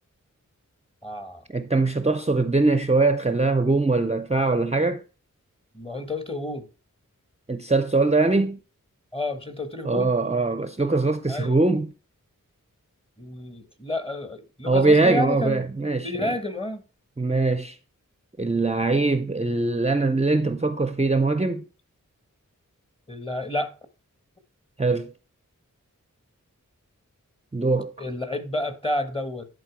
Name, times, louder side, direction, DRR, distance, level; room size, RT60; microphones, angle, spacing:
voice 1, 1.0-1.4 5.7-6.7 9.1-10.1 11.3-11.6 13.2-15.7 16.0-16.8 23.1-23.7 28.0-29.5, left 1 dB, 15° left, 1.4 m, -30 dB
voice 2, 1.5-5.0 7.5-8.6 9.8-11.9 14.7-16.3 17.2-17.8 18.4-21.6 24.8-25.1 27.5-27.9, right 3 dB, 20° right, 0.6 m, -22 dB
10.5 x 4.4 x 4.6 m
wide cardioid pair, 55°, 32 cm